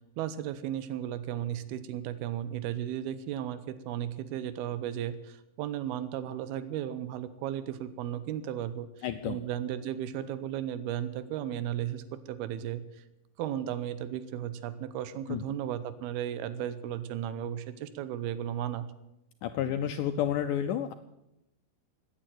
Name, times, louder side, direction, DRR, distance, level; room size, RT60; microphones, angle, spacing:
voice 1, 0.2-13.0 13.4-18.9, right 11 dB, 85° right, 13 dB, 2.8 m, -35 dB
voice 2, 9.0-9.4 15.3-15.4 19.4-20.9, left 10 dB, 80° left, 8 dB, 1.8 m, -30 dB
16.5 x 9.5 x 9.1 m, 0.87 s
omnidirectional pair, 4.4 m